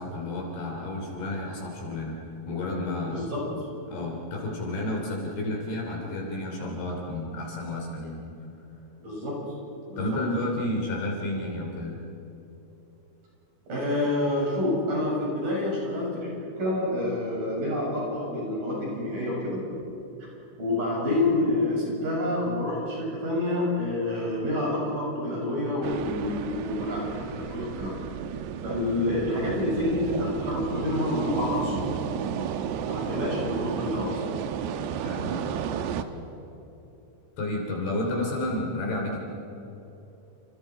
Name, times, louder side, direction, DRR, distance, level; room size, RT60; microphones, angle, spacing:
voice 1, 0.0-3.2 3.9-8.2 10.0-12.0 35.0-35.8 37.4-39.2, left 1 dB, 55° left, 0 dB, 4.8 m, -31 dB
voice 2, 3.0-3.4 9.0-9.4 9.9-10.2 13.7-19.6 20.6-27.9 28.6-32.0 32.9-34.2, left 1 dB, 40° right, -4 dB, 8.9 m, -28 dB
sound 1, 25.8-36.0, right 8 dB, 75° right, 2.6 m, -33 dB
30.0 x 28.5 x 4.9 m, 2.9 s
omnidirectional pair, 5.8 m